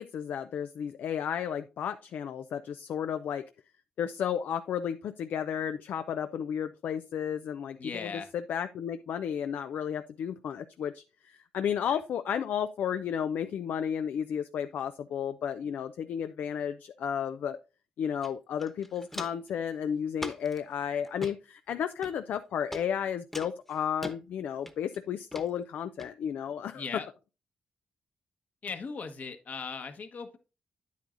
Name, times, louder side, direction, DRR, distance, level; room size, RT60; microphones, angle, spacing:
voice 1, 0.0-3.4 4.0-17.6 18.0-26.8, left 8 dB, 80° left, 10 dB, 0.4 m, -33 dB
voice 2, 7.8-8.3 11.9-12.0 26.7-27.1 28.6-30.4, left 5 dB, 60° left, 7 dB, 1.3 m, -38 dB
Walk footsteps, 18.2-18.3 18.6-19.5 20.2-20.6 21.0-21.3 22.0-22.4 22.7-22.8 23.3-24.2 24.7-25.0 25.3-25.5 26.0-26.1, left 1 dB, 10° left, 1.1 m, -40 dB
9.1 x 8.2 x 2.5 m, 0.32 s
supercardioid pair, 55°, 3 cm